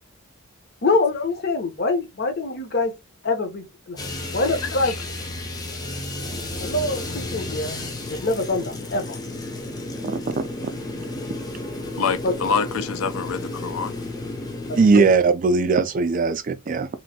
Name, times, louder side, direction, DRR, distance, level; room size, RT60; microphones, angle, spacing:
voice 1, 0.8-2.9 3.2-4.0 4.3-5.0 6.6-7.8 8.1-9.2 12.2-12.3 14.7-15.1, left 3 dB, 45° left, 0.8 m, -24 dB
sound 1, 4.0-15.2, left 2 dB, 20° left, 0.5 m, -32 dB
voice 2, 4.6-5.0 12.0-13.9, left 5 dB, 75° left, 0.4 m, -26 dB
voice 3, 10.0-10.4 14.8-16.9, right 4 dB, 40° right, 0.3 m, -19 dB
3.1 x 2.6 x 2.7 m
head